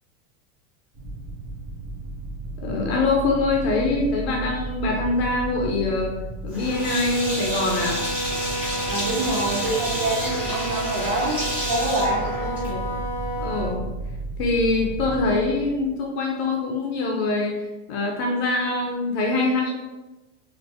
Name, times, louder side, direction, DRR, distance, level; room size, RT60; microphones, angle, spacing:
sound 1, 0.9-16.1, right 2 dB, 40° right, 1.2 m, -34 dB
voice 1, 2.6-6.1 6.4-8.0 12.4-12.9 13.4-13.8 14.4-17.6 17.9-19.7, left 3 dB, 55° left, 0 dB, 0.6 m, -24 dB
Sink (filling or washing), 6.5-12.9, equal, 5° right, 0.4 m, -31 dB
Wind instrument woodwind instrument, 6.6-13.8, right 2 dB, 35° left, 1.0 m, -31 dB
voice 2, 8.8-11.4 11.7-12.2, right 2 dB, 75° right, -8 dB, 1.2 m, -26 dB
3.2 x 2.5 x 2.8 m, 1.1 s
supercardioid pair, 170°, 38 cm